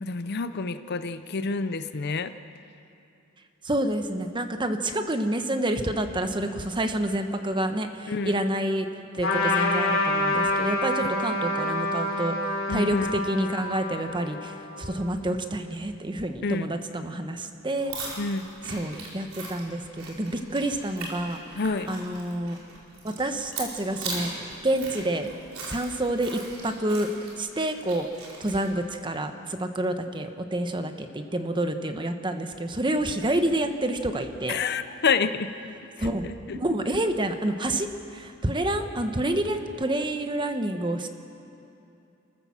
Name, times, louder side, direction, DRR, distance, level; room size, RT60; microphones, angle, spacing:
voice 1, 0.0-2.3 8.1-8.3 12.7-13.1 16.4-16.7 18.2-18.5 21.6-21.9 34.5-35.5 36.0-36.1 36.5-36.6, left 4 dB, 50° left, 11 dB, 0.7 m, -28 dB
voice 2, 3.6-8.9 9.1-12.4 12.7-18.2 18.7-21.6 21.9-22.6 23.0-24.3 24.6-25.3 25.7-27.1 27.4-28.1 28.4-34.6 36.0-36.3 36.5-41.1, right 1 dB, 25° right, 7 dB, 1.2 m, -28 dB
Trumpet, 9.2-15.1, left 2 dB, 75° left, 3.0 m, -27 dB
sound 1, 17.8-28.7, right 3 dB, 90° right, 4.7 m, -39 dB
29.5 x 14.0 x 7.3 m, 2.7 s
head